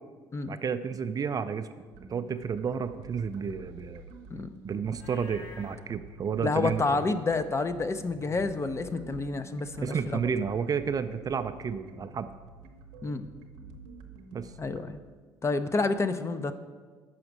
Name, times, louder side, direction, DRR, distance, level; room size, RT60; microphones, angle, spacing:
voice 1, 0.5-1.7 2.1-4.0 4.6-7.1 9.8-12.3 14.3-14.5, right 6 dB, 35° right, 10 dB, 0.4 m, -31 dB
sound 1, 1.9-14.9, right 2 dB, 80° right, 0.8 m, -48 dB
Livestock farm animals working animals, 4.9-5.8, left 3 dB, 70° left, 2.3 m, -48 dB
voice 2, 6.4-10.2 13.0-13.3 14.6-15.0 15.4-16.5, left 3 dB, 25° left, 10 dB, 0.5 m, -29 dB
6.4 x 4.9 x 6.0 m, 1.4 s
hypercardioid pair, 65°, 10 cm